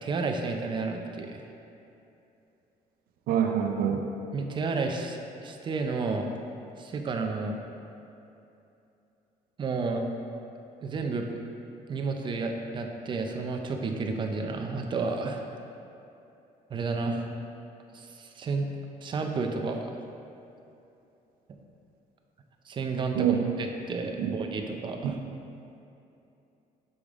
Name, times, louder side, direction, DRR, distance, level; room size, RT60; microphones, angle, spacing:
voice 1, 0.0-1.4 4.3-6.3 6.8-7.6 9.6-10.0 10.8-11.3 11.9-15.4 16.7-17.3 17.9-18.7 19.0-19.9 22.7-25.2, right 3 dB, 35° right, 4 dB, 0.5 m, -31 dB
voice 2, 3.3-4.1 23.1-23.4 24.2-24.3, right 9 dB, 80° right, 4 dB, 0.6 m, -25 dB
6.9 x 5.0 x 3.6 m, 2.8 s
cardioid pair, 155°, 15 cm